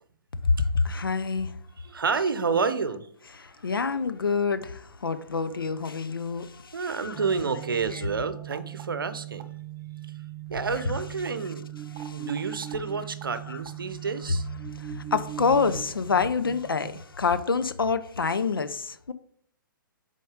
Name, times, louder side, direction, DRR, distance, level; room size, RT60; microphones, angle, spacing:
voice 1, 0.4-1.6 3.4-7.2 7.9-8.0 12.0-12.3 13.5-13.6 14.7-19.1, left 5 dB, 85° left, 0.6 m, -27 dB
voice 2, 1.8-3.1 6.7-9.5 10.5-11.6 12.1-14.5, right 5 dB, 80° right, 0.7 m, -29 dB
sound 1, 7.1-17.0, right 13 dB, 25° right, 0.4 m, -39 dB
7.1 x 4.2 x 4.8 m
figure-of-eight pair, 125°, 11 cm